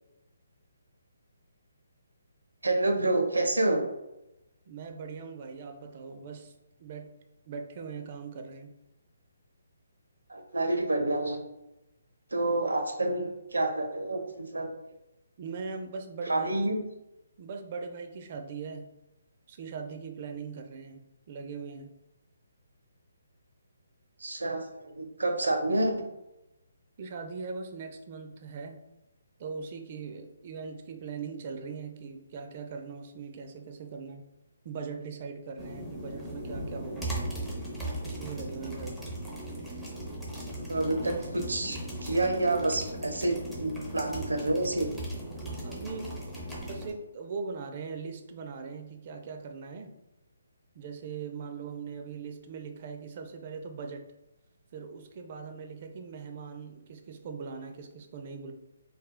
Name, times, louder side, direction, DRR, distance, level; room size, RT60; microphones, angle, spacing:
voice 1, 2.6-3.8 10.3-11.4 12.3-14.7 16.3-16.8 24.2-26.0 40.7-44.9, right 2 dB, 80° right, 3 dB, 0.8 m, -28 dB
voice 2, 4.7-6.5 6.8-7.1 7.5-8.7 15.4-16.7 17.4-18.9 19.5-21.0 21.3-21.9 27.0-28.8 29.4-34.3 34.6-37.1 38.0-39.0 45.6-46.2 46.6-49.9 50.7-54.1 54.7-58.5, right 5 dB, 40° right, 5 dB, 0.5 m, -40 dB
sound 1, 35.6-46.9, right 1 dB, 5° right, 0.9 m, -38 dB
4.2 x 3.5 x 2.2 m, 0.93 s
figure-of-eight pair, 145°, 0 cm